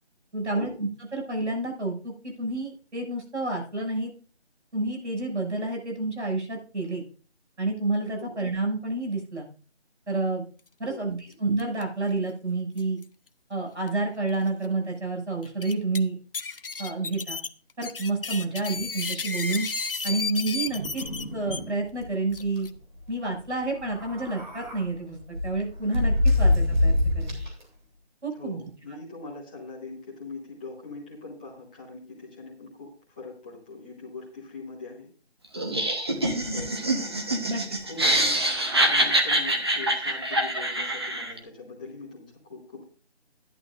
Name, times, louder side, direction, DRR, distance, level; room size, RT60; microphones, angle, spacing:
voice 1, 0.3-4.1 4.7-7.0 7.6-9.5 10.1-10.4 10.8-13.0 13.5-16.2 16.8-17.4 17.8-19.7 20.0-21.0 21.3-22.7 23.1-27.3 28.2-28.6 28.9-29.0 37.5-37.6, right 2 dB, 80° right, 1 dB, 6.8 m, -29 dB
sound 1, 11.6-11.8 12.1-12.2 12.8-13.0 13.9-14.0 14.5-14.6 15.4-16.0 16.3-21.6 22.3-22.7, left 4 dB, 55° left, 0.7 m, -33 dB
sound 2, 20.7-21.7 22.0-22.1 22.4-22.6 23.8-24.8 25.3-27.6, left 2 dB, 40° right, 3.4 m, -25 dB
voice 2, 28.3-35.1 36.1-37.3 37.8-38.4 38.8-42.8, left 3 dB, 5° left, -6 dB, 1.3 m, -42 dB
Laughter, 35.5-41.4, right 1 dB, 25° right, 1.1 m, -25 dB
13.0 x 11.0 x 2.5 m, 0.39 s
figure-of-eight pair, 170°, 34 cm